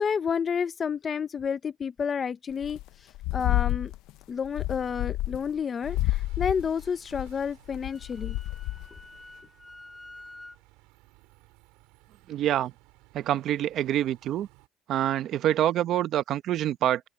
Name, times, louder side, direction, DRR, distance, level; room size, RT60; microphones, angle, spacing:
voice 1, 0.0-3.9 4.3-8.4, left 6 dB, 30° left, 0.6 m, -30 dB
sound 1, 2.6-2.9 3.1-4.1 4.4-5.6 5.8-9.0, left 17 dB, 75° left, 0.6 m, -30 dB
Bus, 5.8-14.7, right 23 dB, 90° right, 5.5 m, -59 dB
Wind instrument woodwind instrument, 7.7-10.6, left 2 dB, 10° left, 2.4 m, -48 dB
voice 2, 12.3-12.7 13.1-14.5 14.9-17.0, right 12 dB, 55° right, 1.0 m, -26 dB
open air
cardioid pair, 135°, 0 cm